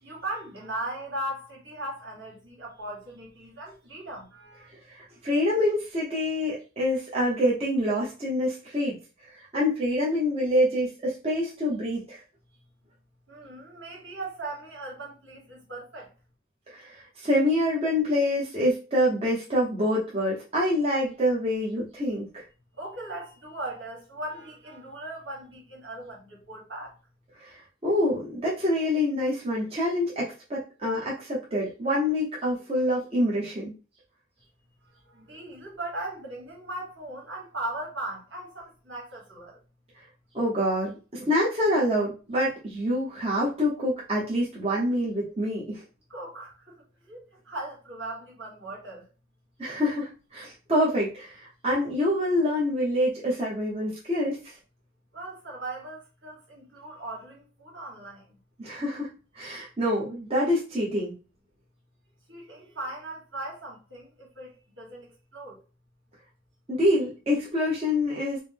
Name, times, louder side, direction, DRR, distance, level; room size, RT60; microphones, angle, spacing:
voice 1, 0.0-4.7 13.3-16.1 22.8-27.0 35.1-39.6 46.1-46.7 47.0-49.0 55.1-58.3 62.3-65.1 65.3-65.6, right 1 dB, 70° right, 1.8 m, -38 dB
voice 2, 4.9-9.0 9.5-12.2 16.7-22.4 27.4-33.7 40.3-45.8 49.6-54.5 58.6-59.1 59.3-61.1 66.7-68.4, left 1 dB, 30° right, 0.9 m, -26 dB
4.7 x 2.2 x 3.4 m
head